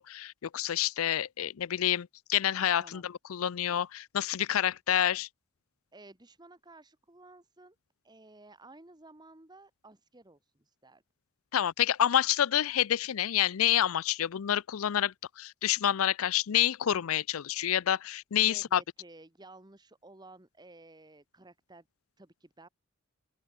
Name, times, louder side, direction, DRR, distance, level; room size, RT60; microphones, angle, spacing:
voice 1, 0.0-5.3 11.5-18.8, left 11 dB, 85° left, 0.5 m, -28 dB
voice 2, 2.6-3.1 5.9-7.8 8.0-11.0 18.5-21.9 22.2-22.7, right 2 dB, 20° right, 1.4 m, -54 dB
open air
head